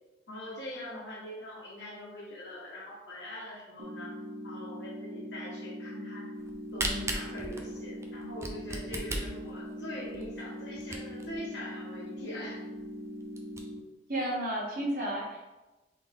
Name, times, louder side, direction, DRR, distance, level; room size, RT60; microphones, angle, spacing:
voice 1, 0.3-4.2 4.4-6.3 6.7-12.6, left 1 dB, 75° left, -5 dB, 1.5 m, -42 dB
sound 1, 3.8-13.8, equal, 75° right, 0.7 m, -41 dB
Camera, 6.4-11.4 11.9-12.0 12.2-12.3 12.8-12.9 13.2-13.6, right 2 dB, 15° right, 0.5 m, -36 dB
voice 2, 14.1-15.4, right 1 dB, 50° right, -4 dB, 1.3 m, -32 dB
4.0 x 3.5 x 3.5 m, 1.1 s
head